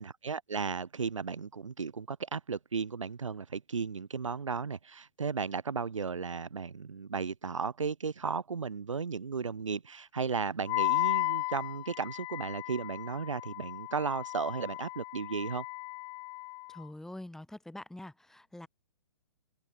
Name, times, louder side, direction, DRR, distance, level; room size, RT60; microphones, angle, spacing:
voice 1, 0.0-15.7, right 5 dB, 75° right, 4.0 m, -35 dB
Wind instrument woodwind instrument, 10.7-16.8, left 22 dB, 30° left, 5.4 m, -35 dB
voice 2, 16.7-18.7, left 1 dB, ahead, 4.9 m, -45 dB
open air
figure-of-eight pair, 130°, 16 cm